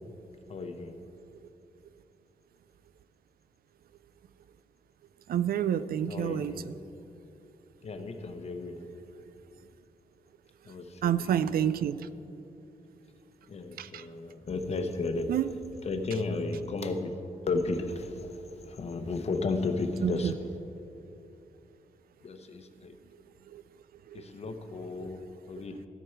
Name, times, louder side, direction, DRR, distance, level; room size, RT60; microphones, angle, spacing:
voice 1, 0.5-1.0 6.1-6.8 7.8-8.9 10.7-11.5 13.5-15.4 15.8-17.1 17.5-20.8 22.2-22.9 24.1-25.9, left 3 dB, 45° left, 7 dB, 0.9 m, -34 dB
voice 2, 5.3-6.7 11.0-12.0 13.8-14.1 15.3-15.4 20.0-20.3 23.5-23.6 24.1-24.2 25.0-25.1, right 9 dB, 90° right, 15 dB, 0.4 m, -29 dB
14.0 x 9.9 x 4.6 m, 2.8 s
wide cardioid pair, 145°, 15 cm